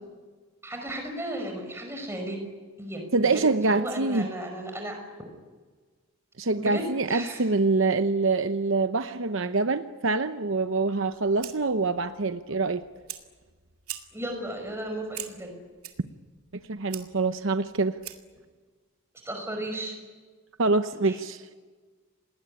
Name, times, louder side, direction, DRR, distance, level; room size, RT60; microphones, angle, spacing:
voice 1, 0.6-2.4 2.8-3.0 3.3-5.0 6.6-7.4 14.1-15.6 19.2-20.0 21.0-21.2, right 1 dB, 10° right, 3 dB, 5.5 m, -34 dB
voice 2, 3.1-4.3 6.4-12.8 16.7-18.0 20.6-21.4, right 3 dB, 60° right, 9 dB, 0.8 m, -25 dB
Fire, 10.9-18.4, right 12 dB, 85° right, 2.3 m, -45 dB
28.0 x 20.0 x 10.0 m, 1.4 s
head